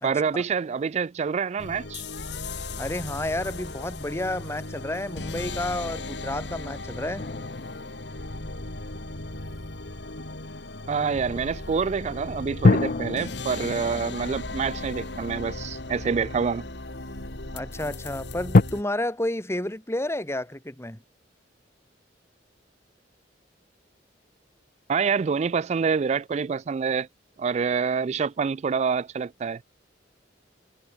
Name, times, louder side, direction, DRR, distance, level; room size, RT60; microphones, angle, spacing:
voice 1, 0.0-2.1 10.9-16.6 24.9-27.1 27.4-29.6, right 5 dB, 35° right, 0.3 m, -26 dB
sound 1, 1.6-18.8, left 2 dB, 65° left, 3.2 m, -36 dB
voice 2, 2.8-7.3 17.5-21.0, left 1 dB, 15° left, 2.1 m, -31 dB
sound 2, 7.2-9.8 12.6-16.0 16.7-16.8 18.5-18.6, left 3 dB, 50° left, 0.6 m, -26 dB
head